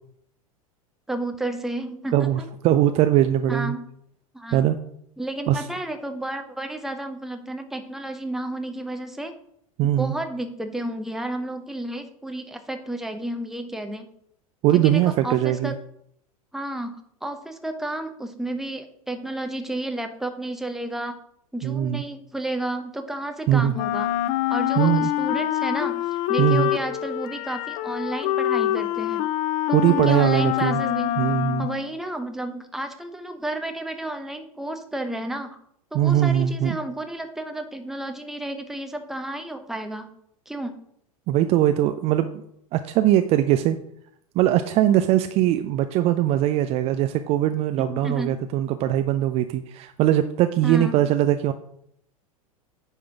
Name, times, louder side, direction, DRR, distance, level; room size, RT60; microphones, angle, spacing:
voice 1, 1.1-2.5 3.5-3.9 4.3-4.7 5.2-9.3 10.0-14.1 14.7-15.8 16.5-21.2 21.5-24.1 24.5-29.2 29.7-31.2 31.6-35.6 35.9-40.1 40.5-40.7 47.8-48.4 50.6-51.1, right 1 dB, ahead, 6 dB, 0.8 m, -32 dB
voice 2, 2.1-3.7 4.5-4.8 5.5-5.6 9.8-10.1 14.6-15.7 21.6-22.0 23.5-23.8 24.8-25.1 26.4-26.7 29.7-30.8 31.2-31.7 35.9-36.8 41.3-42.4 42.7-43.8 44.4-51.5, right 12 dB, 35° right, 9 dB, 0.4 m, -21 dB
Wind instrument woodwind instrument, 23.7-31.9, left 12 dB, 40° left, 0.5 m, -25 dB
9.6 x 3.6 x 5.8 m, 0.71 s
figure-of-eight pair, 90°, 19 cm